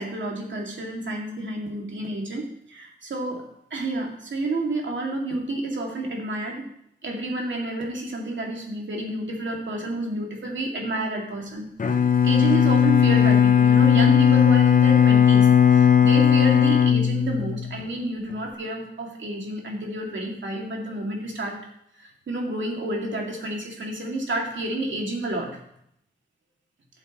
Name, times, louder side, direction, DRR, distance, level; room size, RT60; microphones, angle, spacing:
voice 1, 0.0-3.4 3.7-6.6 7.0-11.7 12.2-21.6 22.0-25.6, right 1 dB, 65° right, 0 dB, 2.4 m, -30 dB
Bowed string instrument, 11.8-17.8, left 8 dB, 40° left, 0.8 m, -17 dB
12.0 x 7.2 x 3.1 m, 0.73 s
cardioid pair, 70°, 20 cm